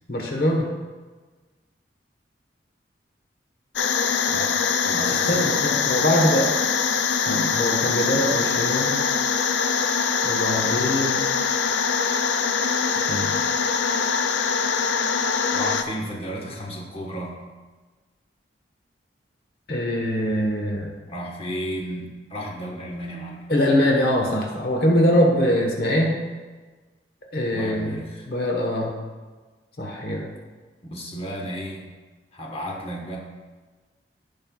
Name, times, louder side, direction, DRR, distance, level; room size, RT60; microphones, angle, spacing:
voice 1, 0.1-0.7 5.0-6.5 7.3-9.1 10.2-11.3 13.0-13.4 19.7-20.9 23.5-26.1 27.3-28.0 28.3-29.0 29.8-30.3, equal, 55° left, 0 dB, 1.2 m, -23 dB
sound 1, 3.8-15.8, left 6 dB, 75° left, 0.5 m, -23 dB
voice 2, 4.3-5.5 15.5-17.4 21.1-23.4 27.5-28.3 30.9-31.8 32.3-33.2, equal, 30° left, -2 dB, 1.3 m, -33 dB
16.5 x 5.4 x 2.4 m, 1.3 s
head